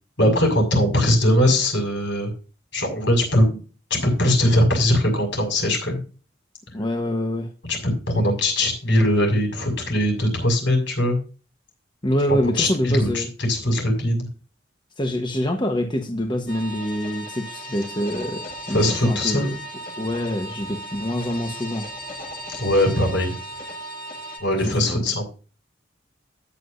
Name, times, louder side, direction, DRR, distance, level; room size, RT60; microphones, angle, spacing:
voice 1, 0.2-2.3 2.7-3.6 3.9-6.0 7.7-11.2 12.3-13.2 13.5-14.2 18.7-19.5 22.6-23.3 24.4-25.3, left 1 dB, 70° left, 2 dB, 6.1 m, -20 dB
voice 2, 6.7-7.5 12.0-13.3 15.0-19.5 20.0-21.9 24.7-25.0, equal, 25° left, 4 dB, 1.1 m, -25 dB
sound 1, 16.5-24.4, equal, 50° left, 5.3 m, -36 dB
13.5 x 9.9 x 2.6 m, 0.35 s
head